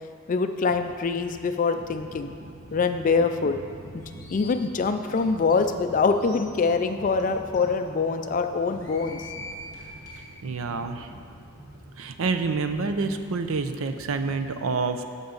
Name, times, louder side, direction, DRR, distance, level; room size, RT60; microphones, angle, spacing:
voice 1, 0.3-2.3 2.7-3.6 3.9-4.0 4.3-9.3, left 4 dB, 40° left, 8 dB, 0.3 m, -24 dB
sound 1, 0.7-14.4, equal, 15° right, 1.7 m, -47 dB
sound 2, 1.9-13.0, right 2 dB, 60° right, 0.9 m, -48 dB
sound 3, 4.0-4.5 5.1-5.2 5.5-5.6 6.0-6.4 7.1-7.2 7.5-7.6 8.6-10.2, left 3 dB, 15° left, 1.9 m, -44 dB
voice 2, 10.4-11.1 12.0-15.0, right 4 dB, 85° right, 8 dB, 0.6 m, -27 dB
14.0 x 5.3 x 3.9 m, 2.3 s
head